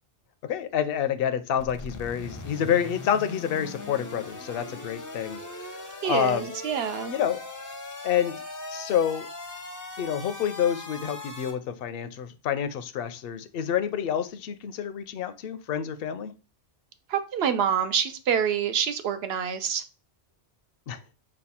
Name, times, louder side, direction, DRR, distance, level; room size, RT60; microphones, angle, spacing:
voice 1, 0.4-5.7 6.0-6.5 7.1-7.4 8.0-8.3 8.7-9.3 10.0-16.3 20.9-21.0, left 9 dB, 65° left, 0.7 m, -28 dB
sound 1, 1.6-11.5, left 2 dB, 25° left, 0.5 m, -39 dB
voice 2, 6.0-7.1 17.1-19.8, right 8 dB, 70° right, 0.8 m, -26 dB
5.2 x 2.3 x 4.2 m
omnidirectional pair, 1.1 m